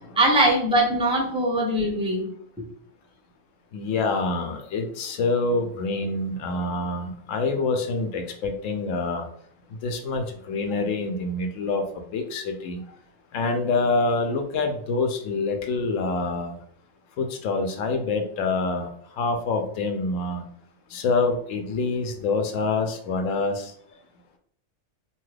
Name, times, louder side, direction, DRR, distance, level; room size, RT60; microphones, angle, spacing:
voice 1, 0.2-2.3, right 1 dB, 5° right, -1 dB, 0.5 m, -21 dB
voice 2, 3.7-9.3 9.8-12.8 13.3-16.6 17.2-18.9 19.2-20.4 20.9-23.7, left 3 dB, 80° left, 5 dB, 0.9 m, -26 dB
2.8 x 2.3 x 3.2 m, 0.63 s
omnidirectional pair, 1.3 m